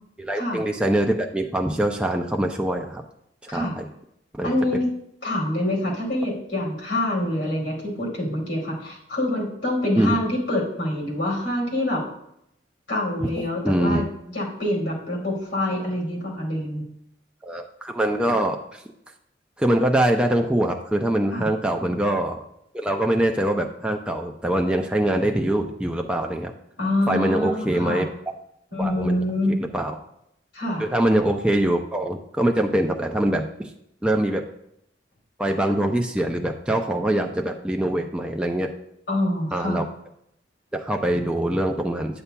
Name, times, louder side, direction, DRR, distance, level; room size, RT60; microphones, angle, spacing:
voice 1, 0.2-3.0 3.5-3.9 4.3-4.5 10.0-10.2 13.6-14.1 17.5-18.8 19.6-22.4 22.7-26.5 27.1-28.1 28.8-29.2 29.7-29.9 30.8-33.7 34.0-34.4 35.4-38.7 39.5-39.9 40.7-42.2, right 1 dB, 5° right, 2 dB, 0.4 m, -23 dB
voice 2, 4.4-4.8 5.2-12.0 12.9-14.0 14.3-16.8 21.3-21.5 26.8-28.0 28.7-29.6 30.5-30.9 39.1-39.8, left 1 dB, 75° left, -3 dB, 2.6 m, -26 dB
9.1 x 6.8 x 2.2 m, 0.77 s
head